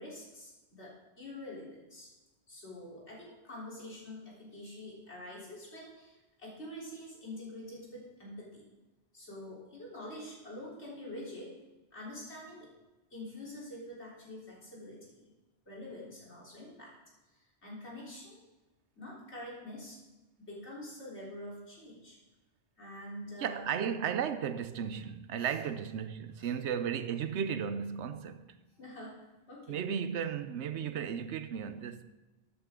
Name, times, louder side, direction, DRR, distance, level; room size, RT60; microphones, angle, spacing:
voice 1, 0.0-2.1 2.5-8.6 9.1-11.6 11.9-12.7 13.1-15.3 15.7-16.9 17.3-18.4 19.0-20.0 20.4-22.2 22.8-23.8 25.4-25.5 26.4-26.5 28.8-29.8, left 1 dB, 80° left, 4.0 m, -46 dB
voice 2, 23.4-28.5 29.7-32.0, right 8 dB, 90° right, 1.0 m, -35 dB
12.5 x 8.5 x 3.7 m
omnidirectional pair, 1.1 m